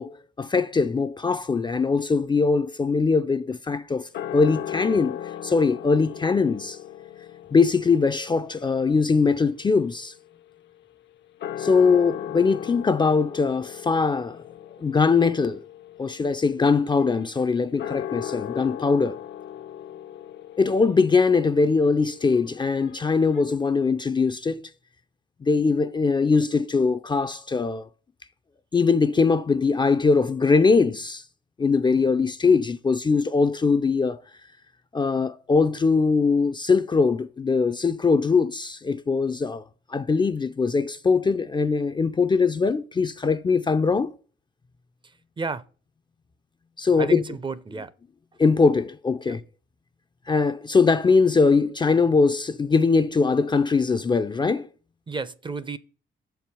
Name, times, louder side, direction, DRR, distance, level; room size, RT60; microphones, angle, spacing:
voice 1, 0.0-5.2 5.4-6.8 7.5-10.1 11.6-14.4 14.8-15.6 16.0-19.2 20.6-24.6 25.4-27.9 28.7-31.2 31.6-34.2 34.9-39.6 39.9-44.1 46.8-47.2 48.4-49.4 50.3-54.7, left 4 dB, 25° left, 0.4 m, -21 dB
sound 1, 4.1-10.8 11.3-23.4, left 10 dB, 65° left, 0.6 m, -38 dB
voice 2, 45.0-45.6 47.0-47.9 49.2-49.4 55.1-55.8, right 4 dB, 25° right, 0.5 m, -32 dB
6.7 x 4.6 x 6.8 m
cardioid pair, 90°, 20 cm